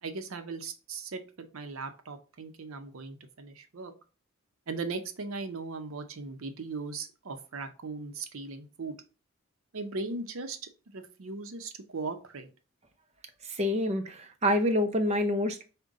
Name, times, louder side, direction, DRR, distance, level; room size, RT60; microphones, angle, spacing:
voice 1, 0.0-3.9 4.7-9.0 9.7-10.6 10.9-12.5, right 3 dB, 70° right, 0.6 m, -38 dB
voice 2, 13.6-15.6, left 1 dB, 30° right, 0.5 m, -27 dB
5.3 x 2.2 x 3.6 m
head